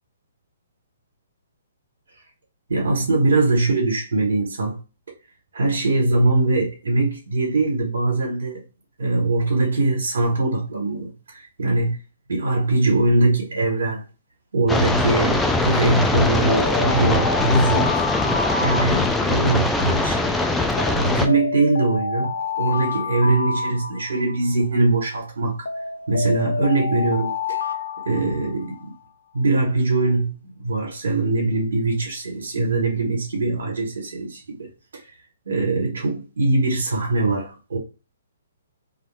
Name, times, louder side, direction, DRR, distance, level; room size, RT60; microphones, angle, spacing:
voice 1, 2.7-4.8 5.5-8.6 9.0-12.0 12.3-14.0 14.5-18.0 18.6-20.2 20.9-25.7 26.1-27.6 28.0-28.9 29.3-34.7 34.9-35.1 35.5-37.8, right 2 dB, 75° right, 1.1 m, -22 dB
sound 1, 14.7-21.3, left 2 dB, 5° left, 0.3 m, -21 dB
sound 2, 16.5-19.7 20.8-24.5 25.7-28.9, left 5 dB, 85° left, 0.4 m, -28 dB
2.6 x 2.3 x 3.3 m
hypercardioid pair, 140°, 0 cm